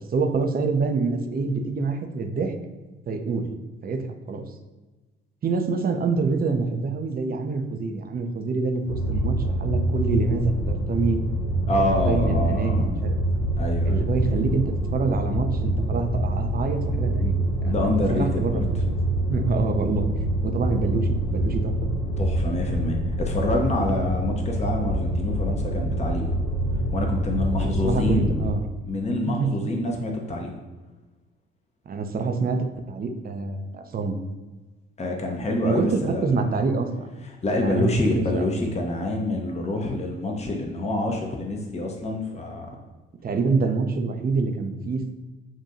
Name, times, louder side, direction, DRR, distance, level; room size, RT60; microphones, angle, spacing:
voice 1, 0.0-2.5 3.1-3.4 3.8-4.0 4.3-4.4 5.4-11.2 11.7-13.2 13.8-14.6 14.9-18.7 19.3-20.1 20.4-21.9 23.9-24.1 27.6-28.7 29.3-29.5 31.9-34.2 35.6-37.1 37.6-38.5 43.2-45.1, right 4 dB, 30° right, 5 dB, 0.7 m, -26 dB
sound 1, 8.9-28.5, right 1 dB, 70° left, 1.0 m, -26 dB
voice 2, 11.7-12.9 13.6-14.0 17.6-18.6 22.2-26.3 26.9-28.4 28.9-30.5 35.0-36.3 37.4-42.7, left 2 dB, 20° left, 2 dB, 0.9 m, -27 dB
7.3 x 2.6 x 2.7 m, 1.2 s
hypercardioid pair, 50°, 29 cm